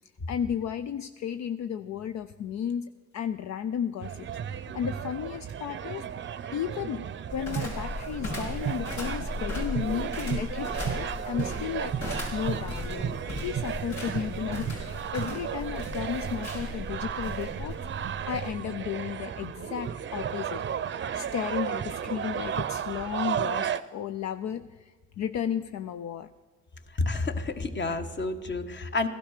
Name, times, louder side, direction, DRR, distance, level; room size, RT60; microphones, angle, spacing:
voice 1, 0.3-6.0 6.5-7.0 7.3-13.2 13.4-26.3, left 8 dB, 65° left, 11 dB, 0.6 m, -34 dB
sound 1, 4.0-23.8, right 8 dB, 40° right, 0.6 m, -34 dB
sound 2, 7.3-18.6, left 2 dB, 85° left, 4.7 m, -37 dB
voice 2, 26.9-29.1, left 3 dB, 35° left, 8 dB, 1.4 m, -29 dB
16.5 x 12.0 x 6.6 m, 1.3 s
cardioid pair, 90°, 30 cm